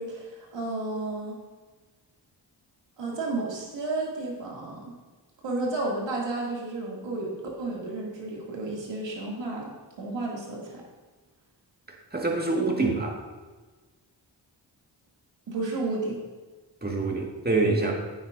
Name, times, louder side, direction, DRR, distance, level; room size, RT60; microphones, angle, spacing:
voice 1, 0.0-1.4 3.0-4.9 5.4-7.3 7.6-10.8 15.5-16.2, right 2 dB, 70° right, -3 dB, 2.5 m, -32 dB
voice 2, 12.1-13.2 16.8-17.9, right 3 dB, 20° right, 1 dB, 1.9 m, -25 dB
9.3 x 8.7 x 2.6 m, 1.3 s
cardioid pair, 50°, 46 cm